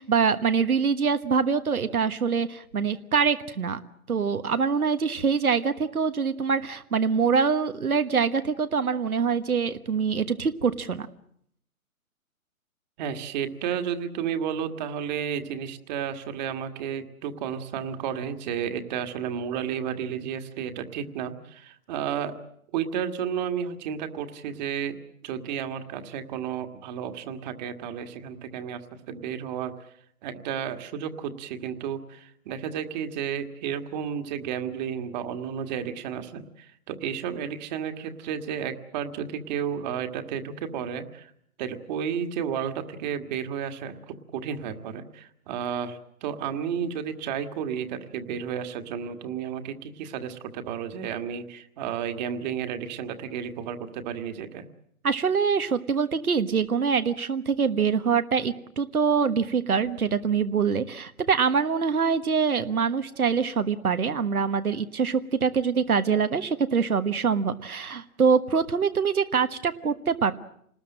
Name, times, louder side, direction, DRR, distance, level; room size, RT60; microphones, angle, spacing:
voice 1, 0.0-3.8 4.1-11.1 55.0-70.3, right 6 dB, 80° right, 10 dB, 1.4 m, -24 dB
voice 2, 13.0-22.3 22.7-25.0 25.2-28.8 29.1-29.9 30.2-41.3 41.6-54.7, right 8 dB, 30° right, 7 dB, 1.8 m, -32 dB
27.0 x 20.0 x 7.5 m, 0.69 s
figure-of-eight pair, 135°, 43 cm